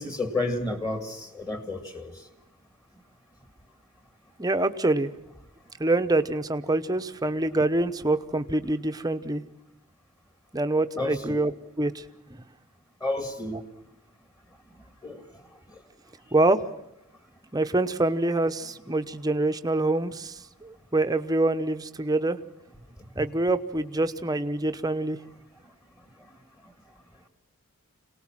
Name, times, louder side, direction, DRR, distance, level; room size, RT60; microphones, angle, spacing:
voice 1, 0.0-2.2 11.0-11.4 13.0-13.6 15.0-15.3 15.7-15.8 23.2-23.3, left 2 dB, 15° left, 7 dB, 1.9 m, -31 dB
voice 2, 4.4-5.1 5.8-9.4 10.5-11.5 11.8-12.0 16.3-16.6 17.5-22.4 23.2-25.2, right 2 dB, 15° right, 9 dB, 0.8 m, -25 dB
26.5 x 19.0 x 7.4 m, 0.86 s
head